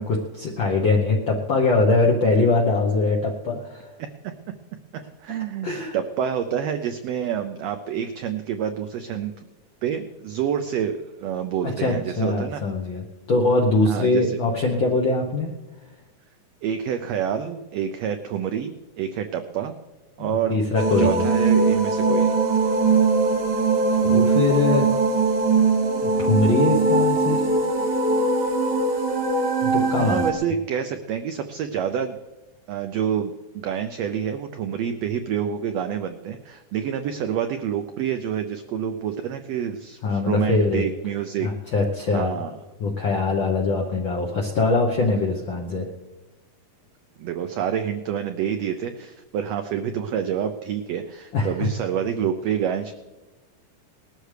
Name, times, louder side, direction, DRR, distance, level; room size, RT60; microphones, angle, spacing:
voice 1, 0.0-3.9 5.6-5.9 11.6-15.5 20.2-21.3 24.0-24.9 26.2-27.4 29.6-30.3 40.0-40.8 41.4-42.4 42.8-45.9 51.3-51.7, left 3 dB, 70° left, 0 dB, 1.1 m, -22 dB
voice 2, 4.9-9.5 9.8-12.6 13.9-14.4 16.6-19.7 20.2-20.6 21.0-22.3 30.0-32.2 32.7-41.5 42.1-42.5 47.2-52.9, right 8 dB, 85° right, 7 dB, 1.4 m, -28 dB
sound 1, 20.7-30.3, right 3 dB, 65° right, 1.0 m, -21 dB
19.5 x 13.0 x 3.3 m, 1.1 s
omnidirectional pair, 3.6 m